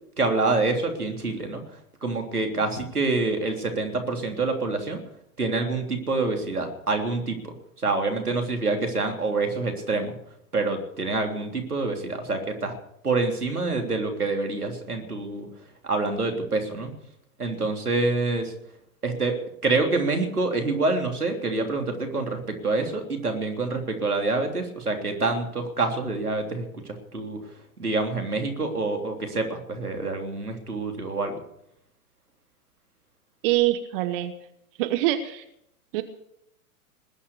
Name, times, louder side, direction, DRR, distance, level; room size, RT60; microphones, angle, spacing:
voice 1, 0.2-1.6 2.0-5.0 5.4-7.5 7.8-10.1 10.5-12.7 13.0-15.5 15.8-16.9 17.4-18.5 19.0-19.4 19.6-27.4 27.8-31.3, right 3 dB, 85° right, 4 dB, 3.4 m, -26 dB
voice 2, 33.4-34.3 34.8-35.4 35.9-36.0, right 14 dB, 40° right, 11 dB, 1.2 m, -24 dB
20.0 x 9.9 x 6.9 m, 0.76 s
figure-of-eight pair, 110°, 44 cm